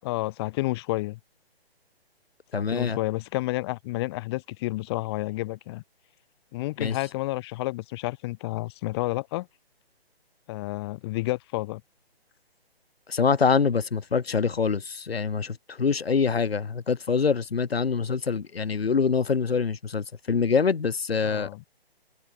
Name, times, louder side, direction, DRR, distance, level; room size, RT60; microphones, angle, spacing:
voice 1, 0.0-1.2 2.5-5.8 6.5-9.5 10.5-11.8 21.2-21.6, left 19 dB, 25° left, 7.1 m, -30 dB
voice 2, 2.5-3.0 6.8-6.9 13.1-21.5, left 5 dB, 70° left, 4.3 m, -25 dB
hypercardioid pair, 160°, 31 cm